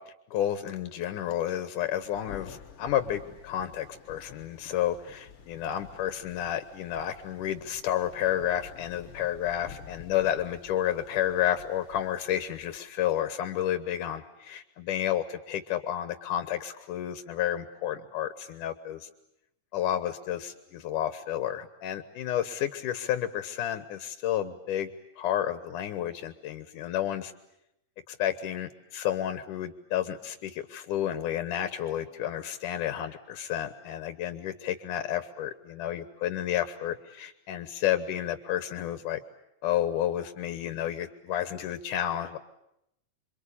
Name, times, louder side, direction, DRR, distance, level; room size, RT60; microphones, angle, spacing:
voice 1, 0.0-19.1 19.7-24.9 25.2-27.3 28.1-39.2 39.6-42.4, left 11 dB, 80° left, 10 dB, 2.7 m, -31 dB
Thunder, 2.0-12.8, left 8 dB, 50° left, 2.1 m, -50 dB
27.5 x 25.0 x 8.5 m, 0.80 s
omnidirectional pair, 3.7 m